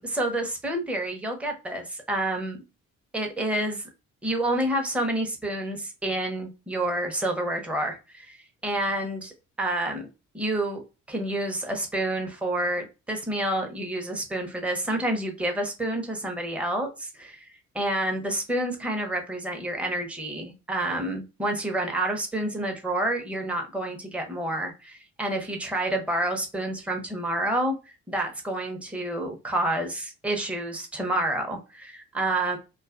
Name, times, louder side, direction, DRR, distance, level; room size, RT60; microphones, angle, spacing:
voice 1, 0.0-2.6 3.1-3.8 4.2-10.0 10.3-10.8 11.1-17.4 17.7-32.6, right 1 dB, 5° right, 2 dB, 0.7 m, -29 dB
2.5 x 2.3 x 2.4 m, 0.28 s
cardioid pair, 90°, 30 cm